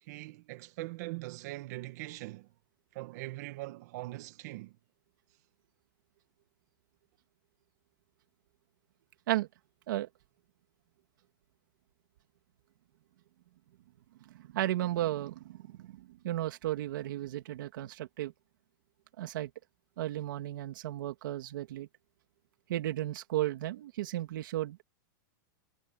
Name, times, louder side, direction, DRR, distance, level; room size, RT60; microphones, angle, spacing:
voice 1, 0.0-2.5 2.9-4.8, right 19 dB, 55° right, 2.0 m, -41 dB
voice 2, 14.3-18.3 19.2-19.5 20.0-21.9 22.7-24.8, right 14 dB, 75° right, 2.7 m, -34 dB
supercardioid pair, 165°, 11 cm